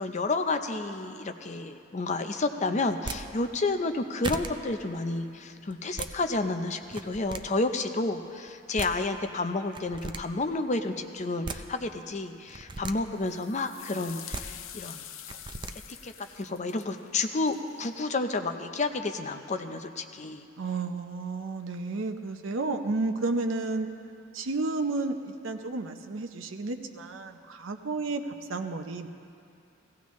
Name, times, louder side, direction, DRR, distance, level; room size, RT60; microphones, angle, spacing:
voice 1, 0.0-15.1 15.3-15.4 16.0-20.4, left 3 dB, 35° left, 7 dB, 0.6 m, -30 dB
sound 1, 2.9-3.2 3.9-4.0 4.2-4.5 5.7-6.1 6.8-7.4 8.5-8.6 8.8-8.9 9.7-10.2 11.2-11.6 12.5-12.9 14.1-14.4 15.3-15.7, right 3 dB, 25° right, 0.4 m, -36 dB
sound 2, 13.2-18.0, left 10 dB, 80° left, 0.6 m, -46 dB
voice 2, 20.6-23.9 24.3-28.2 28.5-29.1, right 3 dB, 75° right, 6 dB, 0.7 m, -31 dB
16.5 x 16.0 x 3.1 m, 2.5 s
head